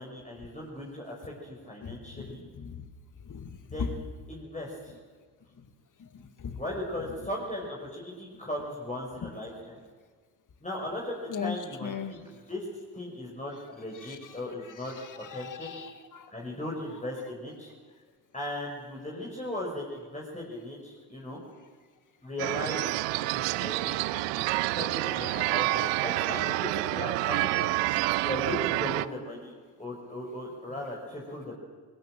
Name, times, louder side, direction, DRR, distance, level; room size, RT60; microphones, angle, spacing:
voice 1, 0.0-2.4 3.7-4.0 4.3-5.0 6.6-9.8 10.6-12.2 12.5-12.6 12.9-14.9 15.3-15.7 16.3-17.7 18.3-21.4 22.2-22.8 23.3-27.5 28.2-29.5 29.8-31.6, left 1 dB, 15° left, -3 dB, 5.7 m, -37 dB
voice 2, 1.8-2.2 2.6-2.8 3.3-3.5 3.8-3.9 6.4-6.6 11.3-11.6 11.8-12.2 14.1-14.2 15.3-16.3 24.5-24.6 25.1-25.5 25.8-25.9 27.6-28.2, left 7 dB, 40° left, 9 dB, 2.3 m, -38 dB
sound 1, 22.4-29.1, right 21 dB, 70° right, 0.7 m, -28 dB
22.0 x 19.5 x 7.7 m, 1.5 s
hypercardioid pair, 45°, 45 cm